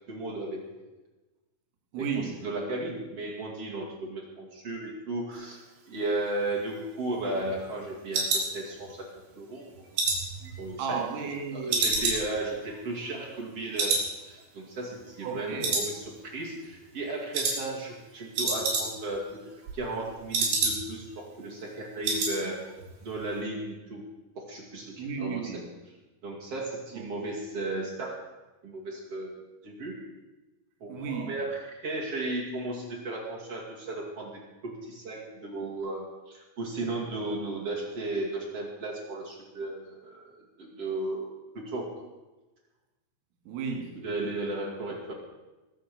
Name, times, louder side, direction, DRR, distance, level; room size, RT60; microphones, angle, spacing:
voice 1, 0.1-0.6 2.0-5.6 5.9-9.1 9.3-10.0 10.6-11.0 11.5-22.6 23.0-24.0 24.4-25.6 26.2-28.2 28.6-29.9 30.8-40.3 40.6-41.9 44.0-45.1, right 2 dB, 40° right, 2.5 m, -35 dB
voice 2, 1.9-2.5 10.8-12.1 15.2-15.8 25.0-25.7 26.9-27.0 30.9-31.3 43.5-44.0, right 5 dB, 85° right, 4.9 m, -34 dB
sound 1, 6.4-9.2 9.6-11.3 11.7-13.5 13.8-14.1 14.4-14.5 14.9-15.4 15.6-16.4 16.7-17.0 17.3-17.6 17.9-18.0 18.2-19.2 19.5-21.1 21.4-21.5 21.8-22.4 22.7-22.9 23.2-23.3, right 3 dB, 60° right, 5.2 m, -29 dB
21.5 x 7.5 x 6.8 m
omnidirectional pair, 5.6 m